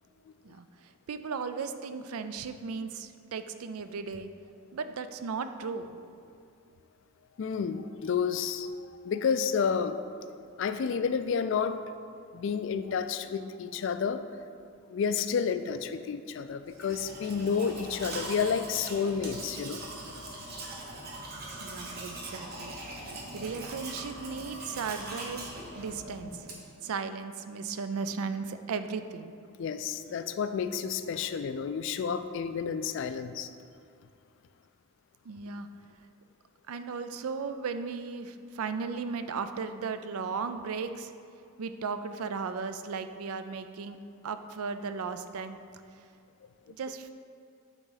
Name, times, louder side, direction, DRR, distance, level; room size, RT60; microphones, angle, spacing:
voice 1, 0.4-4.3 4.7-6.0 21.6-22.8 23.3-26.5 26.8-29.3 35.2-35.7 36.7-41.1 41.6-44.0 44.2-45.6 45.9-46.0 46.7-47.1, right 5 dB, 85° right, 10 dB, 0.4 m, -36 dB
voice 2, 7.4-8.7 9.0-10.0 10.6-11.8 12.3-14.2 14.9-19.8 29.6-33.5, left 6 dB, 60° left, 10 dB, 0.3 m, -30 dB
Domestic sounds home sounds, 16.7-26.8, right 1 dB, 45° right, 0.9 m, -41 dB
8.9 x 3.7 x 4.0 m, 2.4 s
head